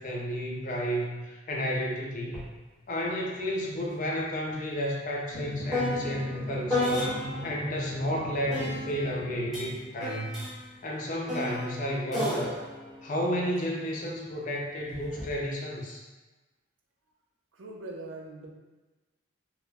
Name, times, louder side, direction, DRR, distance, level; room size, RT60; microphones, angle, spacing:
voice 1, 0.0-2.4 2.9-7.2 7.4-10.4 10.8-12.6 13.0-16.0, equal, 40° left, -2 dB, 0.4 m, -32 dB
sound 1, 2.3-2.5 2.8-7.6 8.5-14.0 14.9-15.3, left 1 dB, ahead, 0.9 m, -34 dB
Drum, 5.3-10.4, equal, 45° right, 0.7 m, -38 dB
voice 2, 17.5-18.5, right 2 dB, 75° right, 0 dB, 0.4 m, -41 dB
2.4 x 2.1 x 3.2 m, 1.2 s
head